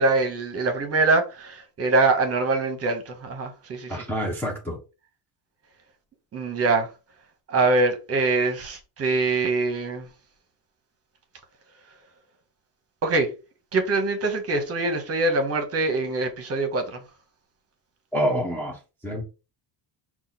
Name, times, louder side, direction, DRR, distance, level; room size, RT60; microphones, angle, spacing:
voice 1, 0.0-4.0 6.3-6.9 7.5-10.1 13.0-13.3 13.7-17.0, right 3 dB, 30° right, 1.0 m, -24 dB
voice 2, 3.9-4.8 18.1-19.2, equal, 5° left, 0.6 m, -27 dB
5.5 x 2.4 x 4.0 m
cardioid pair, 160°, 45 cm